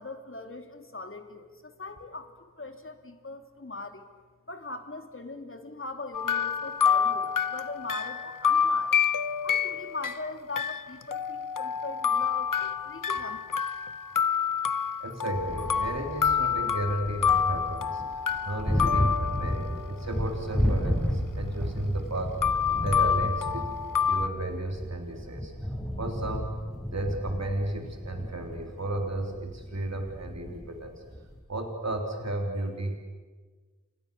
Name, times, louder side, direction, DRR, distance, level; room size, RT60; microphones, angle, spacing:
voice 1, 0.0-4.1 4.5-9.0 9.4-13.4, left 2 dB, 40° left, 6 dB, 3.0 m, -40 dB
sound 1, 6.1-20.0 22.4-24.3, left 7 dB, 80° left, 0.9 m, -27 dB
voice 2, 15.0-18.0 18.4-22.4 22.8-23.7 24.1-25.5 26.0-26.6 26.9-30.9 31.5-33.0, right 1 dB, 55° right, 3 dB, 3.6 m, -33 dB
sound 2, 15.3-31.4, equal, ahead, 7.6 m, -33 dB
29.5 x 28.0 x 6.9 m, 1.4 s
wide cardioid pair, 55°, 32 cm